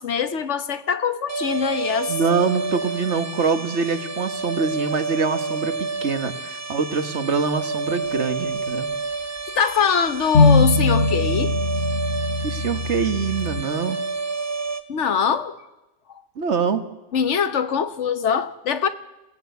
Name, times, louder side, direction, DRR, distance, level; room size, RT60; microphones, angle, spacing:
voice 1, 0.0-2.2 9.6-11.5 14.9-15.6 17.1-18.9, left 7 dB, 75° left, 1.3 m, -23 dB
sound 1, 1.3-14.8, right 4 dB, 50° right, 1.4 m, -29 dB
voice 2, 2.1-8.9 12.4-14.0 16.4-16.8, right 5 dB, 70° right, 1.8 m, -24 dB
sound 2, 10.3-13.6, left 3 dB, 50° left, 1.4 m, -20 dB
28.5 x 17.0 x 8.2 m
omnidirectional pair, 1.2 m